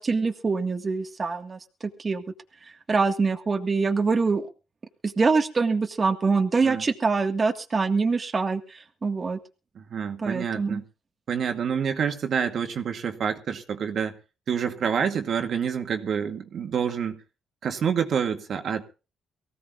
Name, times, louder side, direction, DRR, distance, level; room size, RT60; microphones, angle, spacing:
voice 1, 0.0-1.6 2.0-2.2 2.9-4.4 5.0-9.4 10.2-10.8, right 4 dB, 35° right, 1.8 m, -24 dB
voice 2, 9.8-10.8 11.3-14.2 14.5-17.2 17.6-18.8, right 7 dB, 60° right, 2.2 m, -27 dB
23.5 x 16.5 x 2.5 m
cardioid pair, 90°, 0 cm